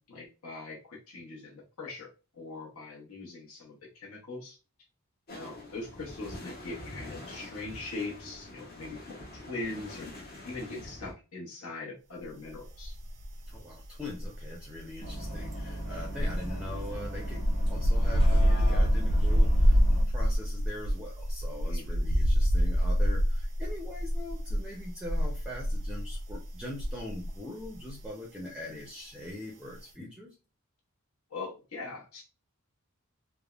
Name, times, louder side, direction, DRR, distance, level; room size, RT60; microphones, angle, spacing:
voice 1, 0.0-4.6 5.3-10.1 10.4-12.9 16.0-16.1 21.6-22.1 31.3-32.2, left 3 dB, 75° left, -2 dB, 0.9 m, -41 dB
sound 1, 5.3-11.1, left 1 dB, 45° left, 0.7 m, -45 dB
sound 2, 12.8-13.6 13.8-27.4 27.6-27.9, equal, 85° right, 0.5 m, -26 dB
voice 2, 13.5-30.3, left 1 dB, 5° right, -2 dB, 0.5 m, -42 dB
Bus, 15.0-20.0, equal, 25° left, 1.1 m, -37 dB
3.4 x 2.0 x 2.3 m, 0.31 s
head